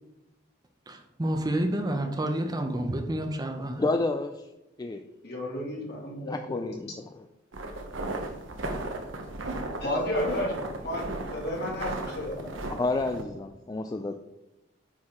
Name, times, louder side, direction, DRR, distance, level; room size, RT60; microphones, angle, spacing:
voice 1, 0.9-3.8, right 1 dB, 20° right, 0.6 m, -29 dB
voice 2, 3.8-4.3 4.8-5.0 6.3-6.9 12.8-14.2, left 2 dB, 20° left, 0.3 m, -29 dB
voice 3, 5.2-6.6 9.5-11.0 11.3-12.4, left 1 dB, 55° left, 2.1 m, -32 dB
sound 1, 7.5-13.2, right 2 dB, 75° right, 1.0 m, -36 dB
8.5 x 4.8 x 3.6 m
head